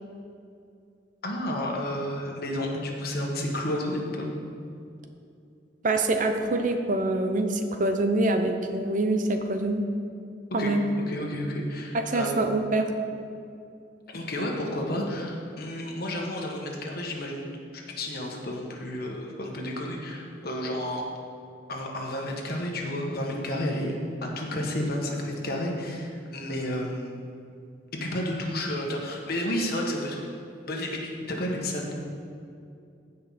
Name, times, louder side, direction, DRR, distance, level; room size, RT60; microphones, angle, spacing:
voice 1, 1.2-4.3 10.6-10.7 11.1-12.5 14.1-17.4 17.7-21.1 21.7-27.1 28.0-30.3 30.7-31.9, left 1 dB, 55° left, 0 dB, 1.5 m, -31 dB
voice 2, 5.8-9.8 10.5-10.9 11.9-12.9, right 2 dB, 45° right, 6 dB, 0.7 m, -25 dB
15.5 x 5.4 x 4.2 m, 2.5 s
head